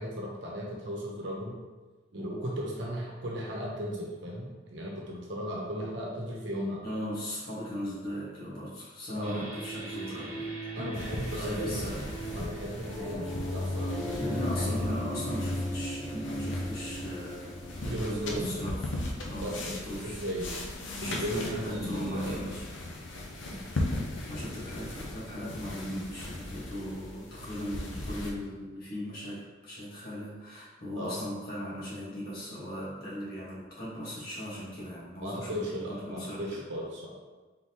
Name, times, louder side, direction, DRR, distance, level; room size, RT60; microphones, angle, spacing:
voice 1, 0.0-1.5 2.1-6.8 9.1-9.5 10.7-11.9 12.3-14.9 17.8-18.5 19.4-20.5 21.0-22.4 31.0-31.2 35.2-37.1, equal, 65° right, -3 dB, 0.9 m, -36 dB
voice 2, 6.8-10.5 10.8-11.0 11.3-12.1 14.2-18.9 19.2-20.1 20.4-20.5 21.0-22.6 23.5-36.6, equal, 50° left, -8 dB, 1.5 m, -38 dB
sound 1, 9.2-18.6, equal, 5° left, 1.4 m, -37 dB
sound 2, 10.9-28.3, left 1 dB, 70° left, 0.6 m, -38 dB
Piano, 12.9-19.9, left 2 dB, 35° right, 0.8 m, -43 dB
3.7 x 3.6 x 3.0 m, 1.3 s
head